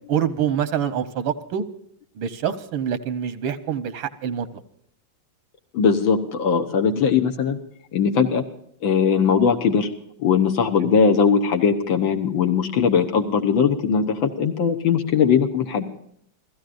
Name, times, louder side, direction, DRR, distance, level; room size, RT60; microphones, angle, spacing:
voice 1, 0.0-1.6 2.2-4.5 6.9-7.0 10.8-11.0, right 8 dB, 85° right, 12 dB, 1.8 m, -26 dB
voice 2, 5.7-7.6 7.9-8.4 8.8-9.9 10.2-15.8, left 6 dB, 80° left, 4 dB, 1.9 m, -20 dB
29.0 x 16.0 x 2.6 m, 0.71 s
omnidirectional pair, 2.1 m